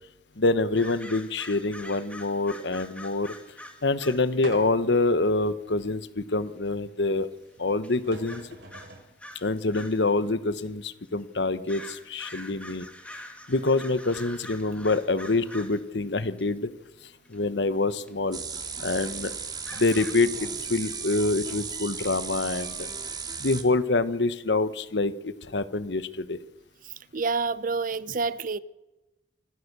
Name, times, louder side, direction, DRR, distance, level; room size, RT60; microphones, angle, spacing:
voice 1, 0.4-3.3 3.8-7.3 7.6-8.4 9.4-12.9 13.5-16.7 17.3-18.4 18.8-19.3 19.7-22.9 23.4-26.4, left 3 dB, 75° left, 1.1 m, -26 dB
sound 1, 0.7-4.3 5.5-5.6 7.2-7.3 7.8-7.9 8.2-10.1 10.6-10.7 11.6-15.8 16.4-16.5 17.2-17.4 18.1-18.2 18.7-18.8 19.6-20.1, left 1 dB, 10° left, 2.2 m, -44 dB
sound 2, 4.4-5.0 5.7-5.8 7.6-7.7 7.9-9.1, right 2 dB, 75° right, 3.8 m, -43 dB
sound 3, 18.3-23.6, right 5 dB, 25° right, 2.1 m, -35 dB
voice 2, 27.1-28.6, right 4 dB, 50° right, 0.7 m, -28 dB
26.0 x 14.5 x 6.8 m
head